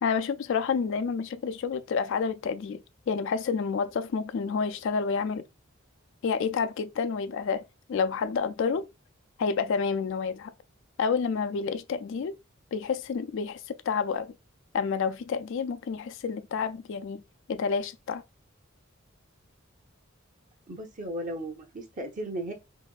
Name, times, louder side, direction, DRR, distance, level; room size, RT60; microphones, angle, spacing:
voice 1, 0.0-5.5 6.2-7.6 7.9-8.9 9.4-10.5 11.0-12.3 12.7-14.3 14.7-17.2 17.5-18.2, left 5 dB, 65° left, 0.4 m, -29 dB
voice 2, 20.7-22.5, right 1 dB, 40° right, 1.0 m, -35 dB
4.1 x 3.0 x 2.4 m
head